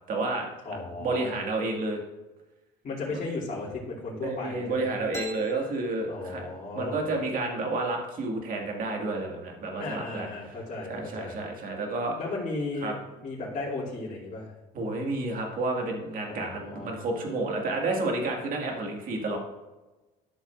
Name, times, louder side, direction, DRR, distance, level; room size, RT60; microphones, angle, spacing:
voice 1, 0.1-0.5 1.0-2.0 3.1-3.2 4.2-6.4 6.7-10.3 10.9-12.2 12.8-12.9 14.7-19.4, right 2 dB, 55° right, 1 dB, 2.0 m, -30 dB
voice 2, 0.6-1.3 2.8-4.9 6.1-7.0 9.8-11.4 12.2-14.5 16.2-16.9, left 3 dB, 45° left, -9 dB, 2.9 m, -35 dB
sound 1, 5.1-6.8, right 1 dB, 15° left, 1.6 m, -44 dB
13.0 x 6.4 x 2.6 m, 1.1 s
cardioid pair, 110°, 17 cm